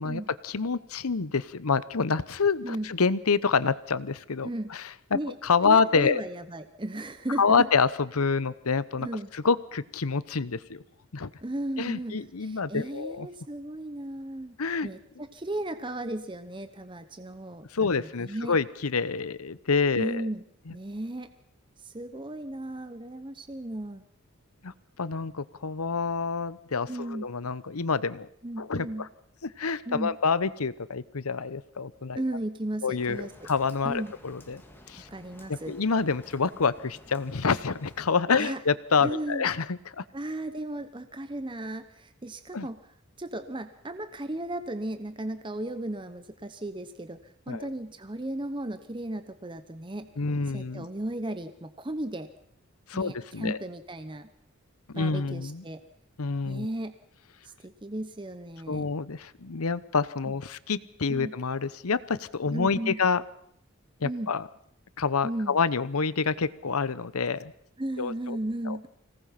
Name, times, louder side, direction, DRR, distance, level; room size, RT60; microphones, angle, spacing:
voice 1, 0.0-6.2 7.4-9.1 9.3-10.8 11.1-11.3 11.8-13.3 14.6-14.9 17.7-20.3 20.7-20.8 24.6-24.7 25.0-28.3 28.6-29.1 29.4-32.2 32.8-34.6 34.9-35.1 35.5-40.0 42.5-42.7 47.5-47.7 50.2-50.9 52.9-53.6 54.9-55.6 56.2-56.7 58.7-63.2 64.0-64.5 65.0-67.5 68.0-68.4 68.7-68.8, left 5 dB, 85° left, 17 dB, 0.9 m, -27 dB
voice 2, 5.6-7.7 9.0-9.3 11.4-14.6 14.8-18.6 19.9-20.4 20.7-21.3 21.8-24.0 26.9-27.3 28.4-29.1 29.9-30.1 32.2-33.5 33.8-34.1 35.1-35.7 38.3-38.6 39.0-39.4 40.1-42.8 43.2-50.1 50.5-52.3 52.9-54.3 54.9-55.8 56.4-56.9 57.4-58.8 60.3-60.4 61.1-61.3 62.5-63.0 64.0-64.3 65.2-65.6 67.8-68.9, right 1 dB, 20° right, 10 dB, 0.9 m, -35 dB
Rain, 32.9-38.2, left 1 dB, 10° left, 2.0 m, -52 dB
25.5 x 18.5 x 5.8 m, 0.67 s
head